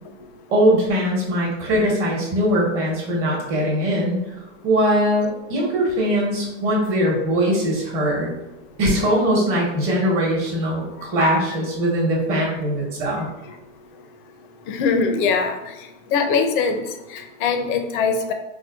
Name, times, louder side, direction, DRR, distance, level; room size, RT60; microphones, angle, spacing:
voice 1, 0.5-4.2 4.6-8.3 8.8-13.3, equal, 35° right, -3 dB, 1.0 m, -21 dB
voice 2, 14.7-15.6 16.1-16.8 17.1-18.3, left 5 dB, 40° left, 5 dB, 0.5 m, -21 dB
4.3 x 2.1 x 2.3 m, 0.97 s
hypercardioid pair, 130°, 40 cm